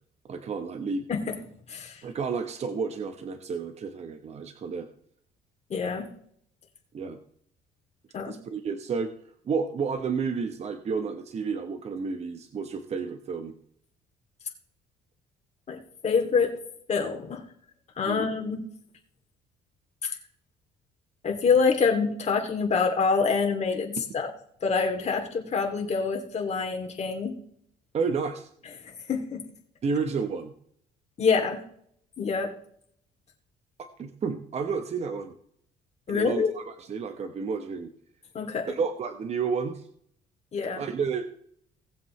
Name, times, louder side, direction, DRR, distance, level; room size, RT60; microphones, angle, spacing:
voice 1, 0.2-1.1 2.0-4.9 6.9-7.2 8.2-9.1 9.4-13.5 18.0-18.3 27.9-28.5 29.8-30.5 33.8-35.3 36.1-36.6 36.9-37.9 38.7-39.9 40.8-41.3, right 5 dB, 40° right, 7 dB, 1.1 m, -31 dB
voice 2, 1.7-2.0 5.7-6.1 8.1-8.4 15.7-16.5 16.9-17.4 18.0-18.6 20.0-20.2 21.2-24.3 24.6-27.3 28.8-29.4 31.2-31.6 32.2-32.5 36.1-36.5 38.3-38.7 40.5-40.8, left 5 dB, 40° left, 2 dB, 2.7 m, -26 dB
18.5 x 7.6 x 3.2 m, 0.65 s
cardioid pair, 110°, 17 cm